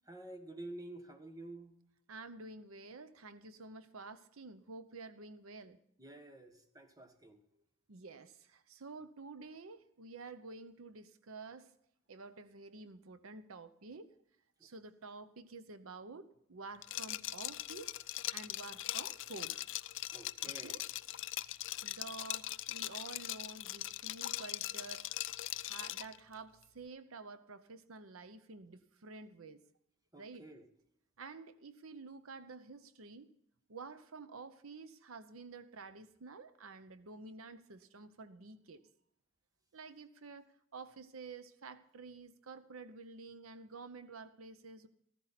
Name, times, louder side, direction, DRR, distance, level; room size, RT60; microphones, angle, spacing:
voice 1, 0.1-1.7 6.0-7.4 20.1-20.9 30.1-30.7, right 2 dB, 20° right, 7 dB, 1.3 m, -50 dB
voice 2, 2.1-5.8 7.9-11.7 12.1-14.1 14.6-17.9 18.3-19.6 20.6-20.8 21.8-25.1 25.6-29.6 30.2-30.5 31.2-33.3 33.7-38.8 39.7-44.9, right 3 dB, 90° right, 12 dB, 0.8 m, -50 dB
Liquid, 16.8-26.2, left 15 dB, 65° left, 0.4 m, -41 dB
14.5 x 14.5 x 4.1 m, 0.74 s
head